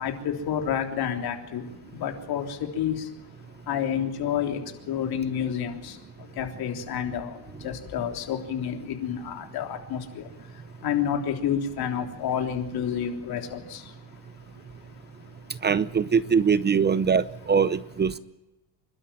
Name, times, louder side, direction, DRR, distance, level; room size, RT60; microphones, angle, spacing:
voice 1, 0.0-1.7 2.0-3.0 3.7-4.6 4.9-6.0 6.4-7.3 7.6-10.2 10.8-13.8, left 8 dB, 65° left, 4 dB, 3.6 m, -29 dB
voice 2, 15.6-18.2, right 6 dB, 25° right, 16 dB, 0.7 m, -22 dB
27.5 x 12.5 x 9.0 m, 0.97 s
cardioid pair, 125°, 40 cm